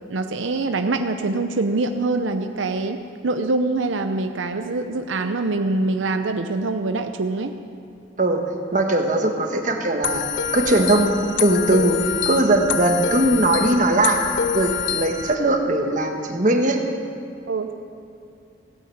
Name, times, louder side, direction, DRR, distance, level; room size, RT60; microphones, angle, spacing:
voice 1, 0.1-7.5 17.5-17.7, right 3 dB, 85° right, 7 dB, 0.6 m, -24 dB
voice 2, 8.7-10.2 10.5-11.1 11.4-12.0 12.2-14.2 14.5-16.8, right 1 dB, 40° right, 3 dB, 1.3 m, -19 dB
sound 1, 10.0-15.3, left 8 dB, 75° left, 0.6 m, -26 dB
16.0 x 9.5 x 7.8 m, 2.7 s
head